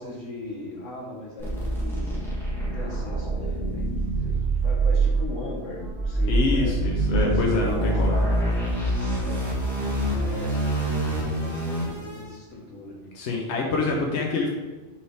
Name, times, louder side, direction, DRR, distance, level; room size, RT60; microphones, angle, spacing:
voice 1, 0.0-2.3 2.6-8.7 9.2-13.0, left 1 dB, 85° left, -2 dB, 1.8 m, -39 dB
sound 1, 1.4-12.2, right 2 dB, ahead, 2.1 m, -25 dB
voice 2, 6.3-8.2 13.1-14.5, left 3 dB, 65° left, -1 dB, 1.2 m, -26 dB
5.9 x 4.9 x 4.7 m, 1.2 s
omnidirectional pair, 1.3 m